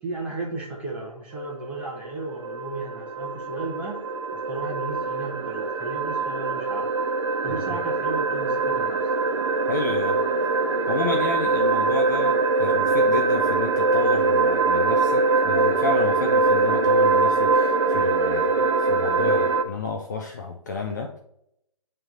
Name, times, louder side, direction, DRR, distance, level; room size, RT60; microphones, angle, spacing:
voice 1, 0.0-4.0 4.3-6.9 7.4-9.1, right 2 dB, 5° right, -3 dB, 0.9 m, -34 dB
sound 1, 1.4-19.6, right 3 dB, 55° right, 0.5 m, -23 dB
voice 2, 9.7-10.2 10.9-21.1, left 3 dB, 30° left, 3 dB, 0.4 m, -31 dB
8.9 x 3.2 x 3.9 m, 0.77 s
hypercardioid pair, 160°, 19 cm